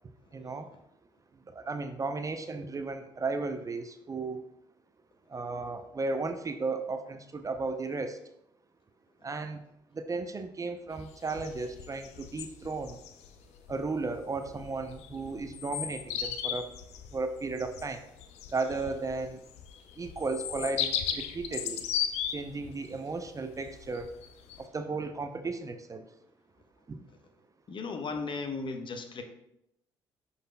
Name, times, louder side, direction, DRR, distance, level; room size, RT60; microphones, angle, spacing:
voice 1, 0.3-0.7 1.5-4.5 5.3-8.2 9.2-9.6 9.9-13.0 13.7-16.7 17.1-18.1 18.5-19.4 20.0-21.8 22.3-24.1 24.6-26.0 26.9-27.0, right 3 dB, 30° right, 8 dB, 0.5 m, -35 dB
sound 1, 10.9-24.6, left 9 dB, 70° left, 0.5 m, -37 dB
voice 2, 27.7-29.2, left 4 dB, 45° left, 6 dB, 0.9 m, -36 dB
11.5 x 4.0 x 2.2 m, 0.80 s
hypercardioid pair, 50°, 12 cm